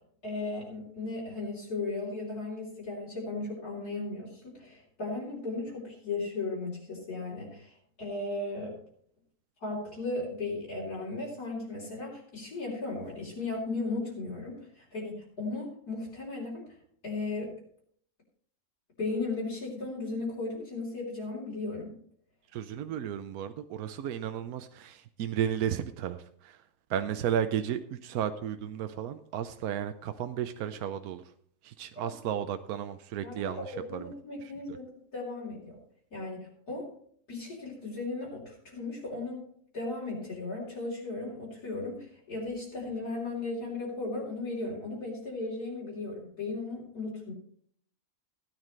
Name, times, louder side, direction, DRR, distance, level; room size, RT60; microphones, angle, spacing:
voice 1, 0.2-8.7 9.6-16.6 17.0-17.5 19.0-21.9 32.0-32.1 33.2-35.8 36.1-36.9 37.3-39.4 39.7-47.3, left 3 dB, 85° left, -7 dB, 4.2 m, -36 dB
voice 2, 22.5-26.6 26.9-31.2 31.6-34.1 34.4-34.5, right 9 dB, 80° right, 9 dB, 1.1 m, -33 dB
16.0 x 9.8 x 3.2 m, 0.62 s
omnidirectional pair, 1.6 m